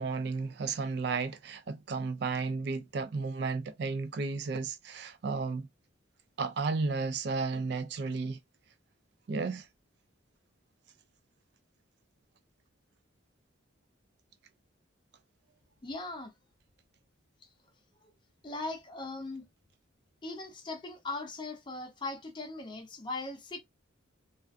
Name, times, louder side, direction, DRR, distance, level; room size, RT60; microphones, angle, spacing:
voice 1, 0.0-5.7 6.4-8.4 9.3-9.7, right 4 dB, 55° right, 0.4 m, -33 dB
voice 2, 15.8-16.3 17.4-17.5 18.4-19.5 20.2-23.6, left 2 dB, 25° left, 0.4 m, -39 dB
2.4 x 2.2 x 2.4 m
head